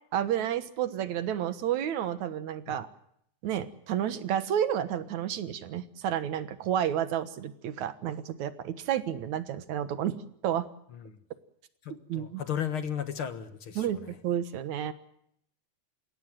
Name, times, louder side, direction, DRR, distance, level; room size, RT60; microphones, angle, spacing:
voice 1, 0.1-2.9 3.4-10.2 10.4-10.7 11.9-12.4 13.8-14.9, right 10 dB, 75° right, 12 dB, 2.7 m, -31 dB
voice 2, 11.8-14.1, left 9 dB, 55° left, 11 dB, 1.9 m, -35 dB
29.0 x 17.0 x 7.6 m, 0.72 s
omnidirectional pair, 3.4 m